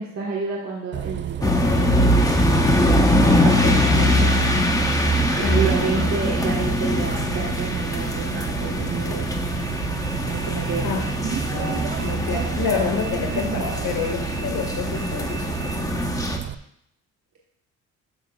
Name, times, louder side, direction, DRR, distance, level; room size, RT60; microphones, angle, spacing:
voice 1, 0.0-2.8 3.2-4.5 5.4-9.3 10.3-11.2, right 4 dB, 55° right, -2 dB, 1.5 m, -30 dB
Bus, 0.9-16.5, right 11 dB, 40° right, 0.4 m, -31 dB
sound 1, 1.4-16.4, left 1 dB, 10° left, 1.0 m, -22 dB
voice 2, 5.4-6.2 10.8-11.1 11.4-15.9, left 6 dB, 80° left, 3 dB, 2.0 m, -28 dB
13.0 x 6.6 x 2.4 m, 0.76 s
cardioid pair, 90°, 30 cm